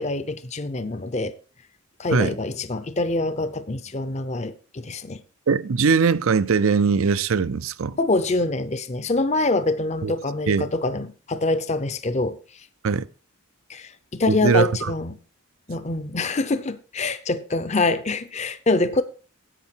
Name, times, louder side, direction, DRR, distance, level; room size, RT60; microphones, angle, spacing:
voice 1, 0.0-1.3 2.0-5.2 8.0-12.4 13.7-15.2 15.7-19.0, left 2 dB, 30° left, 0.6 m, -25 dB
voice 2, 5.5-8.0 10.0-10.1 10.5-10.7 12.8-13.1 14.3-14.9, right 5 dB, 70° right, 0.5 m, -21 dB
11.0 x 8.2 x 4.5 m
head